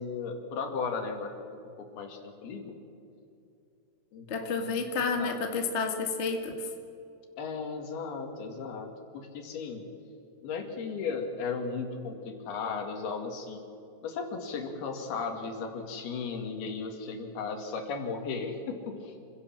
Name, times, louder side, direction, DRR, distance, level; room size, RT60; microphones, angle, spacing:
voice 1, 0.0-1.4 1.8-2.8 4.1-5.4 7.4-9.8 10.4-13.6 14.0-19.1, left 5 dB, 65° left, 4 dB, 4.0 m, -36 dB
voice 2, 4.3-6.7, left 4 dB, 45° left, 4 dB, 0.8 m, -30 dB
27.0 x 16.5 x 7.5 m, 2.7 s
omnidirectional pair, 4.9 m